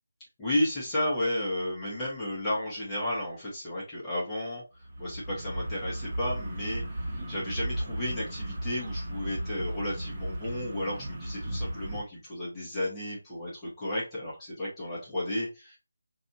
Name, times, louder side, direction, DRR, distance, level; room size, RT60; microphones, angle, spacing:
voice 1, 0.4-4.6 5.0-15.8, left 1 dB, 10° left, -8 dB, 1.6 m, -33 dB
sound 1, 4.8-12.0, right 1 dB, 25° right, 1.5 m, -35 dB
6.0 x 2.9 x 2.7 m, 0.28 s
figure-of-eight pair, 155°, 0 cm